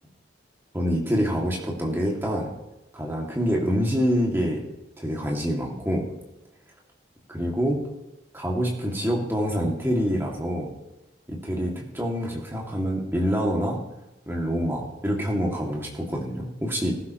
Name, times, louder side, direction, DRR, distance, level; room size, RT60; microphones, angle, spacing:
voice 1, 0.7-2.5 2.9-4.7 5.0-6.1 7.3-7.8 8.3-10.7 11.3-13.8 14.3-16.9, equal, 10° right, -2 dB, 2.4 m, -26 dB
19.5 x 11.5 x 3.1 m, 0.96 s
head